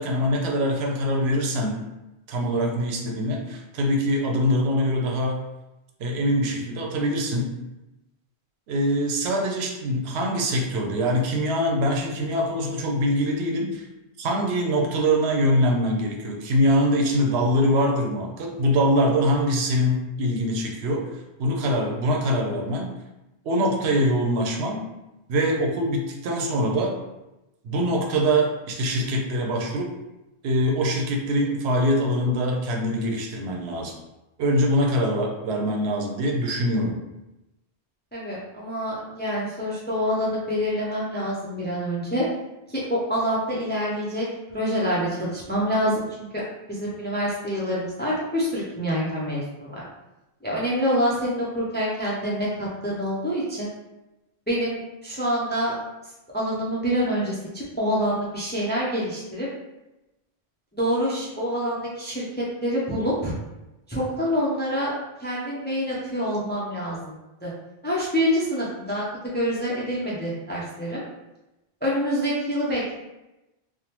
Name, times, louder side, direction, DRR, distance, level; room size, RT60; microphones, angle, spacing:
voice 1, 0.0-1.8 2.3-5.4 6.0-7.5 8.7-13.9 14.2-21.1 21.4-22.9 23.4-24.9 25.3-27.0 27.6-29.9 30.4-33.9 34.4-37.0, equal, 85° right, 1 dB, 0.9 m, -23 dB
voice 2, 38.1-42.3 42.7-44.3 44.5-46.1 46.3-46.4 46.7-49.8 50.4-53.7 54.5-55.8 56.3-59.5 60.7-63.3 63.9-67.1 67.4-67.5 67.8-69.0 69.3-71.0 71.8-73.0, equal, 15° left, -6 dB, 0.4 m, -26 dB
3.4 x 2.0 x 2.8 m, 0.97 s
omnidirectional pair, 1.1 m